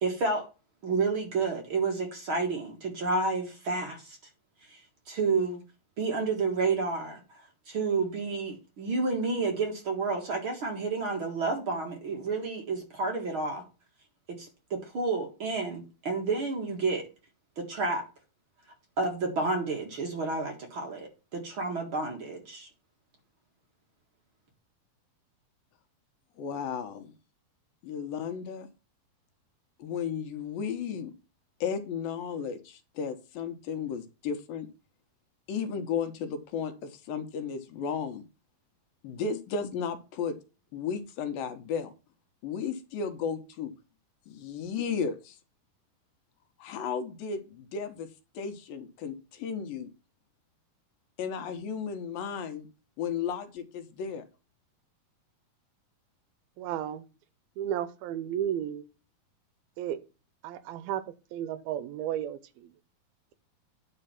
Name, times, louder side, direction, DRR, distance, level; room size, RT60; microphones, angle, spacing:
voice 1, 0.0-0.4 0.8-4.2 4.7-4.8 5.1-5.6 6.0-7.2 7.7-13.6 14.4-17.0 17.6-18.0 19.0-22.7, right 3 dB, 45° right, 2.0 m, -30 dB
voice 2, 26.4-27.1 27.8-28.7 29.8-31.1 31.6-34.7 35.5-38.2 39.0-40.4 40.7-41.9 42.4-43.7 44.3-45.4 46.6-49.9 51.2-52.7 53.0-54.2, left 6 dB, 75° left, 2.6 m, -34 dB
voice 3, 56.6-57.0 57.6-58.8 59.8-60.0 60.4-61.0 61.3-62.7, right 10 dB, 80° right, 2.6 m, -33 dB
10.0 x 4.4 x 5.8 m
omnidirectional pair, 4.3 m